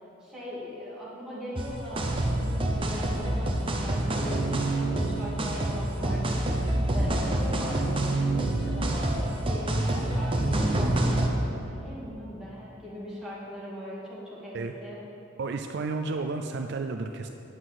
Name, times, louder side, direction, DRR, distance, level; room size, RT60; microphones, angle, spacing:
voice 1, 0.2-6.4 6.9-15.0, equal, 5° right, -9 dB, 2.7 m, -40 dB
sound 1, 1.6-11.3, right 1 dB, 25° right, 0.9 m, -27 dB
voice 2, 15.4-17.3, right 3 dB, 55° right, 6 dB, 0.4 m, -32 dB
9.4 x 6.1 x 7.7 m, 2.9 s
head